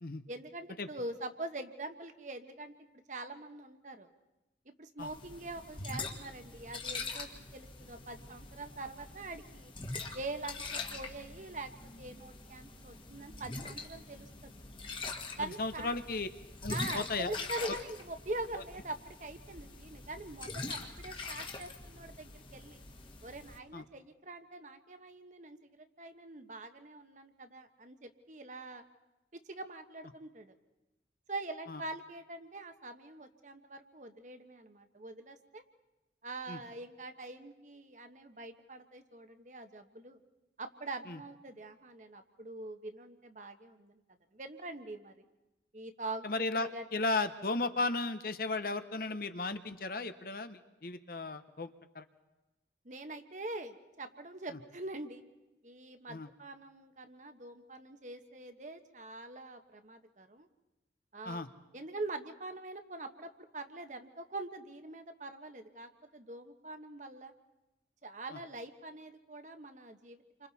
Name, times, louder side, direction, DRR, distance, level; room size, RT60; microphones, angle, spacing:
voice 1, 0.3-4.1 4.6-9.7 10.1-14.5 15.4-16.0 16.7-22.8 23.2-28.8 29.3-30.5 31.3-35.6 36.2-40.2 40.6-44.0 44.3-45.2 45.7-46.3 46.5-47.0 52.8-55.2 55.6-60.5 61.1-61.4 61.7-67.3 68.0-70.5, right 2 dB, 45° right, 7 dB, 1.3 m, -44 dB
sound 1, 5.0-23.6, left 3 dB, 30° left, 1.6 m, -43 dB
voice 2, 15.4-16.3 16.6-17.3 23.7-23.8 31.7-31.8 36.5-36.6 41.1-41.2 46.2-52.0 56.1-56.3 61.2-61.5 68.3-68.4, left 3 dB, 55° left, 10 dB, 1.0 m, -35 dB
29.0 x 25.5 x 4.2 m, 1.0 s
head